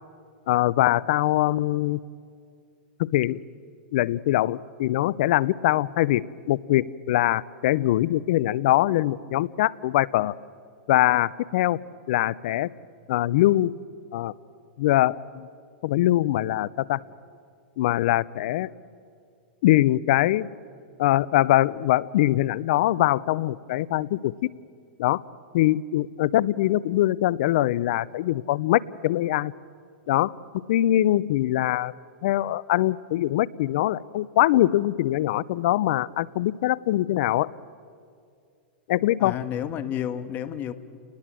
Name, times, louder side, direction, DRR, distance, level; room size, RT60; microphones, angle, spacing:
voice 1, 0.5-2.0 3.0-3.4 3.9-10.3 10.9-11.8 12.1-12.7 13.1-13.8 14.1-14.3 14.8-15.5 15.8-17.0 17.8-18.7 19.6-20.5 21.0-24.5 25.0-25.2 25.5-29.5 30.1-30.3 30.7-31.9 32.2-37.5 38.9-39.4, left 15 dB, 60° left, 22 dB, 0.6 m, -23 dB
voice 2, 39.2-40.7, left 10 dB, 35° left, 12 dB, 1.5 m, -30 dB
30.0 x 20.0 x 7.7 m, 2.3 s
hypercardioid pair, 110°, 6 cm